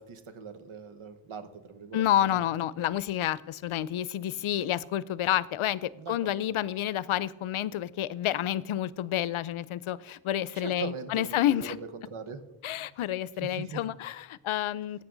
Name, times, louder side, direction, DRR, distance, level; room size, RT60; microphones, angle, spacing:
voice 1, 0.0-2.4 6.0-6.3 10.5-12.4 13.4-13.8, right 5 dB, 80° right, 9 dB, 1.4 m, -41 dB
voice 2, 1.9-11.8 12.6-15.0, left 12 dB, 80° left, 19 dB, 0.6 m, -29 dB
16.5 x 8.8 x 3.9 m, 0.98 s
wide cardioid pair, 95°, 49 cm